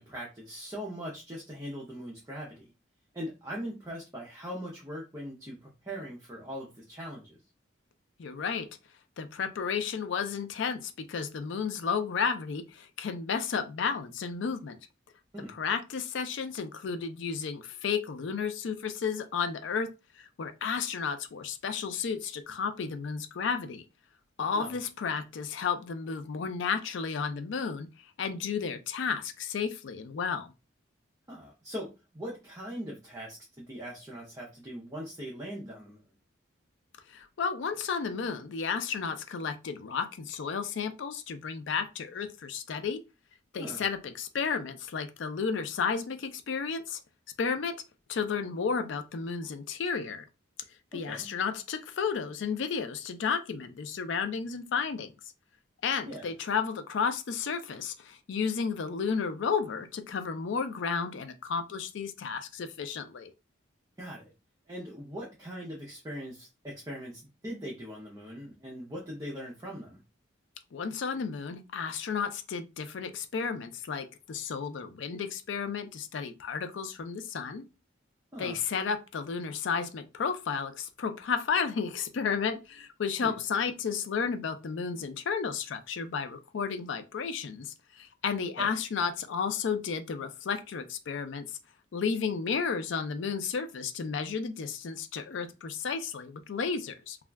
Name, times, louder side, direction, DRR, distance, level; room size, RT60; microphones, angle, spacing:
voice 1, 0.0-2.7 3.1-7.4 15.3-15.6 24.5-24.7 31.3-36.0 43.6-43.8 51.1-51.3 56.1-56.2 64.0-64.3 64.7-70.0 78.3-78.6 83.2-83.4 88.6-88.7, equal, 15° right, 0.5 m, -41 dB
voice 2, 8.2-8.7 9.2-14.8 15.5-19.9 20.2-23.8 24.4-27.9 28.2-30.5 37.1-43.0 43.5-47.0 47.4-47.7 48.1-50.2 50.9-55.1 55.8-63.3 70.7-77.6 78.4-91.5 91.9-97.2, left 6 dB, 65° left, 0.4 m, -32 dB
2.3 x 2.2 x 3.3 m
head